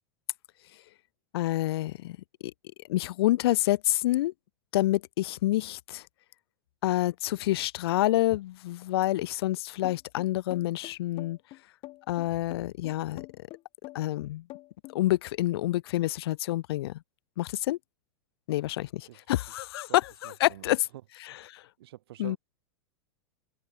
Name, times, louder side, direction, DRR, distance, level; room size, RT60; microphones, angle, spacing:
voice 1, 1.3-2.2 2.9-4.3 4.7-6.1 6.8-11.4 12.1-13.3 13.9-14.5 14.9-17.0 17.4-17.8 18.5-20.9 21.2-21.6 22.2-22.4, left 15 dB, 75° left, 0.4 m, -28 dB
sound 1, 9.8-15.0, left 18 dB, 40° left, 1.9 m, -45 dB
voice 2, 20.2-20.8 21.8-22.4, right 14 dB, 75° right, 2.4 m, -46 dB
hypercardioid pair, 120°, 13 cm